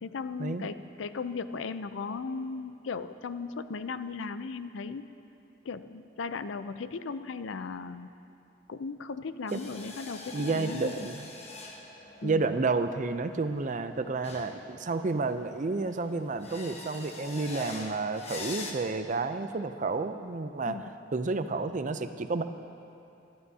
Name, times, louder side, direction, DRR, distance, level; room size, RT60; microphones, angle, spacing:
voice 1, 0.0-5.1 5.6-8.1 8.7-11.1 12.2-12.5 20.7-20.8, left 4 dB, 85° left, 12 dB, 0.5 m, -37 dB
sound 1, 9.5-18.7, left 2 dB, 35° left, 1.1 m, -44 dB
voice 2, 10.3-11.3 12.2-20.8 21.1-22.4, right 3 dB, 40° right, 9 dB, 0.5 m, -30 dB
22.0 x 12.5 x 2.8 m, 2.8 s
head